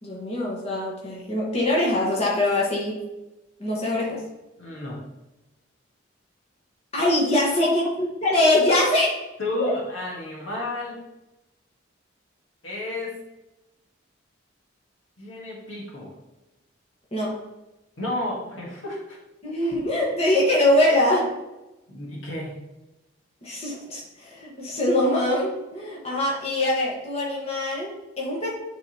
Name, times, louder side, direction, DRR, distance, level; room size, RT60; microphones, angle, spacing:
voice 1, 0.0-3.0 3.6-4.2 6.9-9.1 9.6-9.7 17.1-17.4 19.4-21.3 23.4-28.5, left 1 dB, 30° left, -4 dB, 1.5 m, -23 dB
voice 2, 4.6-5.0 7.6-7.9 9.4-11.0 12.6-13.2 15.2-16.1 18.0-19.2 19.6-19.7 21.9-22.6, left 1 dB, 85° left, -2 dB, 1.7 m, -31 dB
8.8 x 4.0 x 3.0 m, 0.98 s
head